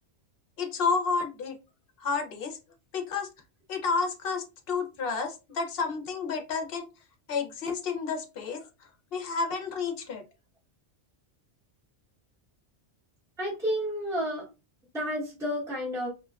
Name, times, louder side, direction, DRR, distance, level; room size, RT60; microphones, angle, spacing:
voice 1, 0.6-1.6 2.0-2.6 2.9-3.3 3.7-6.9 7.3-8.6 9.1-10.2, left 5 dB, 60° left, 5 dB, 0.8 m, -30 dB
voice 2, 13.4-14.5 14.9-16.1, equal, 5° right, -6 dB, 0.9 m, -30 dB
2.7 x 2.2 x 2.2 m, 0.28 s
omnidirectional pair, 1.2 m